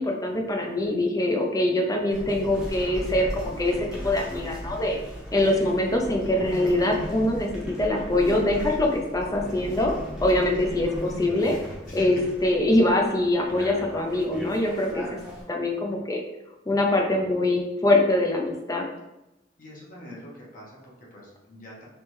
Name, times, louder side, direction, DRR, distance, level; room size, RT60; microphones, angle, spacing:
voice 1, 0.0-5.0 5.3-7.5 7.8-9.9 10.2-11.6 11.9-15.0 15.5-16.2 16.7-18.8, left 1 dB, 20° left, 1 dB, 0.5 m, -23 dB
sound 1, 2.1-15.4, equal, 5° right, 0.9 m, -37 dB
voice 2, 15.0-15.3 19.6-21.8, equal, 50° left, -4 dB, 1.0 m, -45 dB
3.4 x 3.2 x 3.1 m, 0.94 s
head